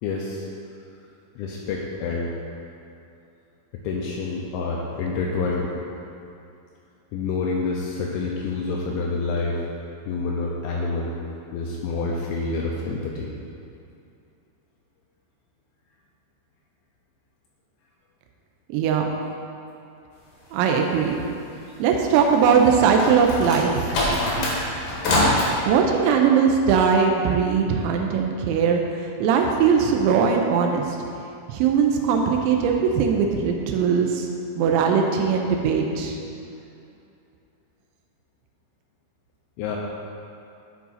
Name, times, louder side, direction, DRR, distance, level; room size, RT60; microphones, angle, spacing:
voice 1, 0.0-0.5 1.4-2.4 3.8-5.7 7.1-9.6 10.1-11.1 11.5-13.3 39.6-39.8, left 3 dB, 85° left, -3 dB, 2.9 m, -27 dB
voice 2, 18.7-19.1 20.5-21.2 21.8-24.0 25.7-28.8 29.2-31.0 31.5-34.3 34.6-36.2, right 6 dB, 90° right, 2 dB, 2.6 m, -20 dB
sound 1, 22.6-25.5, left 1 dB, 65° left, 2.1 m, -23 dB
11.0 x 4.7 x 4.0 m, 2.6 s
omnidirectional pair, 5.8 m